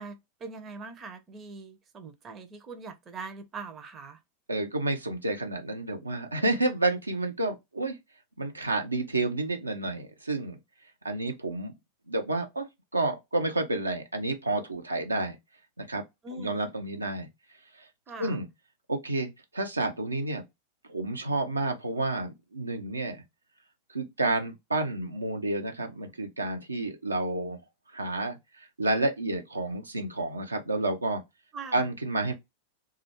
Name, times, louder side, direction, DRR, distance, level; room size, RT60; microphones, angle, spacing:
voice 1, 0.0-4.2 16.2-16.7 18.1-18.4 31.5-31.8, right 4 dB, 25° right, 0.5 m, -42 dB
voice 2, 4.5-8.0 8.4-10.6 11.0-11.7 12.1-12.7 12.9-15.4 15.8-16.0 16.4-17.3 17.8-17.9 18.2-18.5 18.9-20.4 20.9-23.2 23.9-27.6 27.9-31.2 31.7-32.3, right 2 dB, 80° right, 0.5 m, -30 dB
2.3 x 2.1 x 2.9 m
figure-of-eight pair, 90°, 0 cm